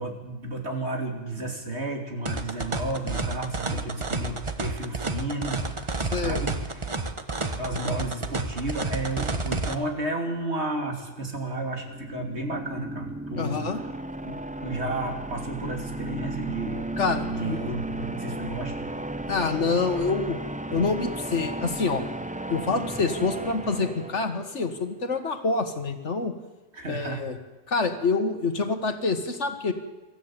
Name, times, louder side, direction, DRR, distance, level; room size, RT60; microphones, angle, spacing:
voice 1, 0.0-7.2 7.5-13.6 14.2-14.3 14.6-16.8 17.2-18.8 26.7-27.3, right 2 dB, 55° right, 2 dB, 3.2 m, -32 dB
sound 1, 2.3-9.8, right 3 dB, 25° right, 1.1 m, -30 dB
voice 2, 6.1-6.4 13.4-13.8 17.0-17.6 19.3-20.4 20.7-22.1 22.5-26.3 26.9-27.4 27.7-29.7, left 4 dB, 65° left, 7 dB, 1.9 m, -26 dB
sound 2, 11.8-24.7, right 1 dB, 10° right, 0.5 m, -34 dB
23.0 x 13.5 x 8.9 m, 1.1 s
omnidirectional pair, 1.3 m